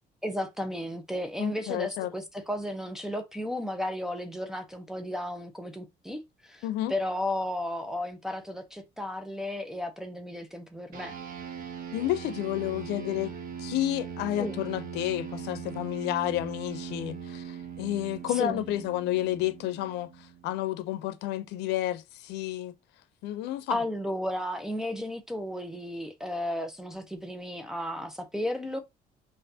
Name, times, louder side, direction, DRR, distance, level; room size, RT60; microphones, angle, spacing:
voice 1, 0.2-6.6 6.9-11.2 14.4-14.6 18.3-18.6 23.7-28.8, left 1 dB, 5° right, 0.9 m, -34 dB
voice 2, 1.4-2.1 6.6-6.9 11.9-13.3 13.6-20.1 20.4-22.7 23.2-23.8, left 14 dB, 90° left, 0.6 m, -30 dB
sound 1, 10.9-20.7, right 7 dB, 60° right, 1.2 m, -40 dB
5.7 x 2.6 x 2.8 m
cardioid pair, 110°, 17 cm